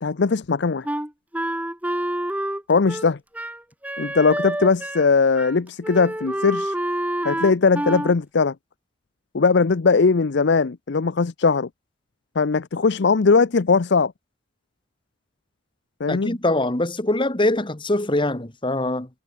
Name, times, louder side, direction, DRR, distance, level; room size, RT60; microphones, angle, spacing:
voice 1, 0.0-0.9 2.7-3.2 4.0-6.7 7.2-8.5 9.3-11.7 12.4-14.1 16.0-16.3, left 4 dB, 60° left, 0.6 m, -19 dB
Wind instrument woodwind instrument, 0.8-5.1 5.4-5.6 5.8-8.1, right 1 dB, 10° right, 2.2 m, -28 dB
voice 2, 16.1-19.1, left 1 dB, 25° left, 1.7 m, -23 dB
head